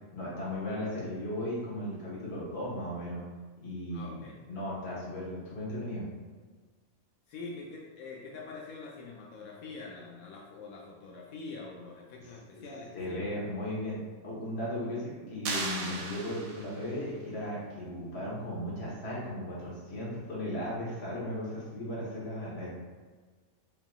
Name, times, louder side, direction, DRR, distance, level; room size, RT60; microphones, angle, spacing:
voice 1, 0.1-3.2 3.6-4.2 4.5-6.0 12.9-14.0 14.2-22.7, left 1 dB, 50° left, -7 dB, 1.5 m, -36 dB
voice 2, 3.9-4.4 7.3-13.3, left 3 dB, 85° left, -2 dB, 1.1 m, -44 dB
sound 1, 15.4-17.0, right 3 dB, 80° right, 1.1 m, -36 dB
5.6 x 2.8 x 2.3 m, 1.4 s
omnidirectional pair, 1.5 m